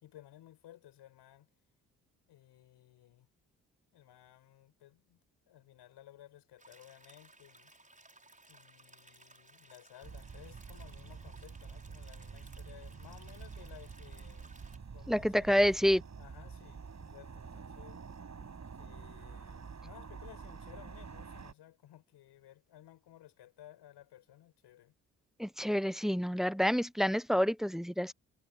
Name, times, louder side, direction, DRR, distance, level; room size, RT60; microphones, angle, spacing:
voice 1, 0.0-1.5 2.3-3.3 3.9-5.2 5.5-7.7 8.5-14.5 14.9-15.8 16.2-18.0 18.8-25.0, left 13 dB, 70° left, 5.2 m, -57 dB
sound 1, 6.6-14.8, right 2 dB, 20° right, 6.2 m, -60 dB
sound 2, 10.0-21.5, right 5 dB, 40° right, 6.6 m, -48 dB
voice 2, 15.1-16.0 25.4-28.1, equal, ahead, 0.8 m, -28 dB
hypercardioid pair, 45°, 42 cm